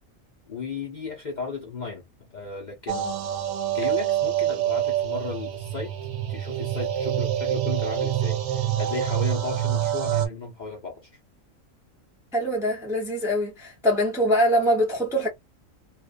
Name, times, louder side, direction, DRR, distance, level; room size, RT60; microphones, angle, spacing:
voice 1, 0.5-3.1 3.7-5.9 6.3-11.1, left 4 dB, 45° left, 0.6 m, -35 dB
sound 1, 2.9-10.3, right 11 dB, 65° right, 0.8 m, -26 dB
voice 2, 12.3-15.3, equal, 5° right, 0.5 m, -23 dB
2.4 x 2.2 x 2.4 m
omnidirectional pair, 1.4 m